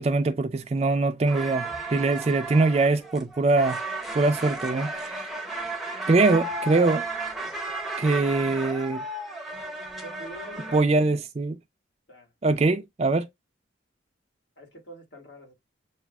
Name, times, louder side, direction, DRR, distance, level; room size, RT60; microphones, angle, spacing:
voice 1, 0.0-3.8 4.1-5.3 6.1-7.1 8.0-9.0 10.7-11.6 12.4-13.3, right 3 dB, 35° right, 0.4 m, -23 dB
sound 1, 1.3-10.8, right 2 dB, ahead, 0.7 m, -34 dB
voice 2, 10.0-11.2 12.1-12.3 14.6-15.5, right 1 dB, 75° left, 1.9 m, -45 dB
7.0 x 2.4 x 2.3 m
head